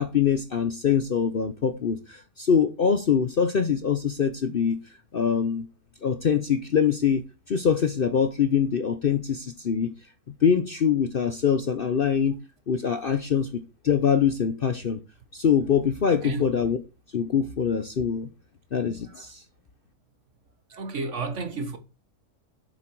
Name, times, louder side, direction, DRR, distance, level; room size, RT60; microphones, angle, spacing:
voice 1, 0.0-4.8 5.1-5.6 6.0-9.9 10.4-12.4 12.7-15.0 15.3-16.8 17.1-18.3 18.7-19.4, left 7 dB, 50° left, 0.7 m, -24 dB
voice 2, 20.7-21.8, right 3 dB, 55° right, 1.5 m, -31 dB
8.3 x 7.1 x 4.6 m
omnidirectional pair, 1.6 m